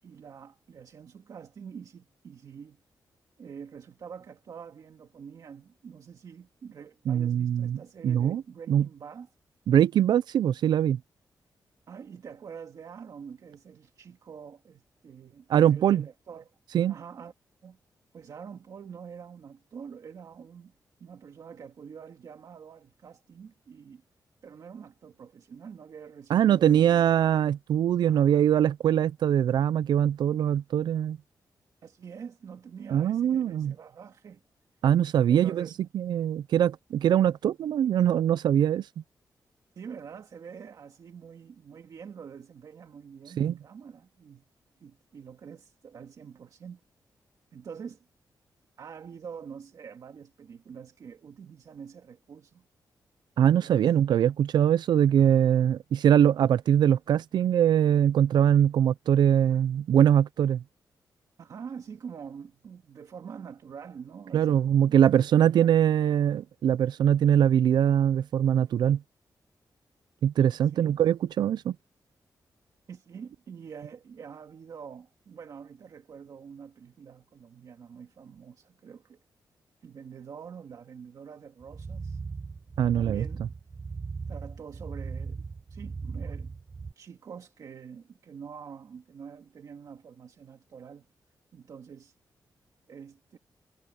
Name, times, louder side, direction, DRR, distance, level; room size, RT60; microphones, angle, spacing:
voice 1, 0.0-2.8 3.4-9.3 11.9-16.5 16.9-17.3 17.6-17.8 18.1-20.7 21.0-24.0 24.4-27.0 28.1-28.4 31.8-34.4 35.3-35.9 39.8-44.5 44.8-46.8 47.5-48.1 48.8-52.7 53.4-53.9 61.4-65.7 70.6-71.0 72.9-79.2 79.8-82.2 82.8-83.4 84.3-85.4 85.7-86.5 86.8-91.1 91.5-92.2 92.9-93.4, right 6 dB, 55° right, 2.1 m, -46 dB
voice 2, 7.1-8.4 8.7-8.9 9.7-11.0 15.5-16.1 16.7-16.9 26.3-31.2 32.9-33.7 34.8-35.7 35.9-38.9 43.4-43.5 53.4-60.6 64.3-69.0 70.2-71.7 82.8-83.3, right 9 dB, 90° right, 0.4 m, -22 dB
sound 1, 81.6-86.9, right 4 dB, 25° right, 0.6 m, -38 dB
wide cardioid pair, 175°, 7 cm